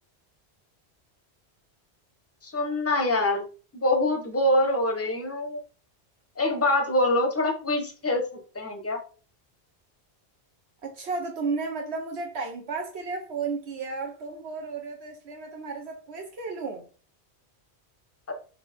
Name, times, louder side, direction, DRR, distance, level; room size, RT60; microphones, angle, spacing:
voice 1, 2.4-3.5 3.7-5.6 6.4-8.2 8.5-9.0, left 1 dB, 15° left, 0.8 m, -24 dB
voice 2, 10.8-16.8, right 4 dB, 70° right, 1.0 m, -33 dB
4.0 x 2.7 x 4.2 m
omnidirectional pair, 1.1 m